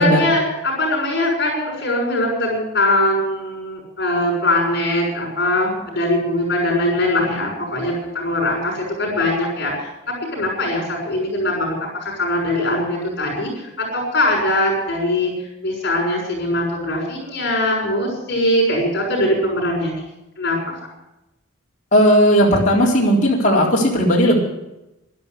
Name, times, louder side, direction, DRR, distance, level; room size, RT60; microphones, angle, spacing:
voice 1, 0.0-9.9 10.3-11.8 12.0-15.3 15.6-20.1 20.4-20.6, left 1 dB, 50° left, -4 dB, 6.5 m, -21 dB
voice 2, 21.9-24.4, equal, 35° left, -4 dB, 4.0 m, -15 dB
12.0 x 12.0 x 9.4 m, 0.94 s
head